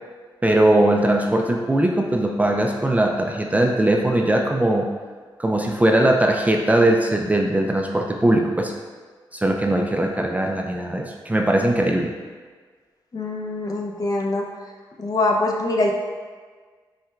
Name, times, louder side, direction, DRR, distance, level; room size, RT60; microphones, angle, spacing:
voice 1, 0.4-4.9 5.4-8.7 9.3-12.2, right 1 dB, 15° right, 1 dB, 0.3 m, -20 dB
voice 2, 13.1-14.5 15.0-15.9, left 2 dB, 40° left, 0 dB, 0.6 m, -23 dB
5.6 x 2.2 x 2.3 m, 1.5 s
cardioid pair, 55°, 9 cm